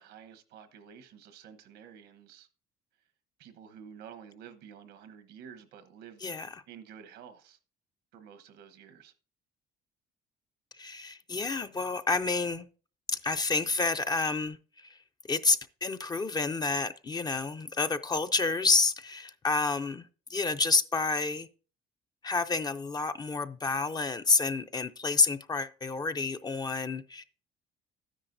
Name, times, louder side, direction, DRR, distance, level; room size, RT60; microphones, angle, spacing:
voice 1, 0.0-2.5 3.4-6.2 6.7-7.6 8.1-9.1, right 8 dB, 85° right, 1.1 m, -50 dB
voice 2, 10.8-12.7 13.1-15.0 15.3-21.5 22.2-27.2, left 4 dB, 25° left, 0.4 m, -29 dB
12.5 x 9.9 x 2.6 m
cardioid pair, 110°, 17 cm